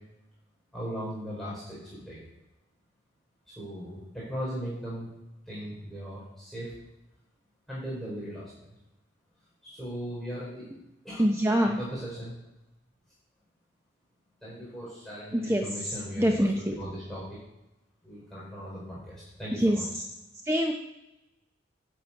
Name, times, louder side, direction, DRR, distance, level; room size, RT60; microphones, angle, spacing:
voice 1, 0.7-2.2 3.5-5.1 5.5-6.8 7.7-8.7 9.6-10.7 11.0-11.3 11.6-12.4 14.4-17.4 18.0-19.8, equal, ahead, -9 dB, 4.2 m, -38 dB
voice 2, 11.2-11.8 15.3-16.7 19.5-20.1 20.4-20.7, equal, 15° right, 2 dB, 0.8 m, -25 dB
9.6 x 7.8 x 8.6 m, 0.96 s
head